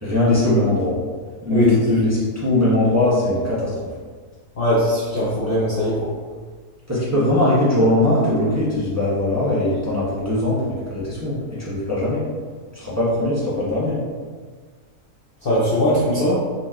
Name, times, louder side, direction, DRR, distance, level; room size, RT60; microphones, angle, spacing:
voice 1, 0.0-1.0 1.4-3.7 6.9-12.2 12.7-14.0, left 1 dB, 10° right, -8 dB, 0.9 m, -20 dB
voice 2, 4.6-6.1 15.4-16.4, left 1 dB, 45° left, -8 dB, 0.8 m, -19 dB
4.0 x 3.0 x 3.7 m, 1.5 s
omnidirectional pair, 1.6 m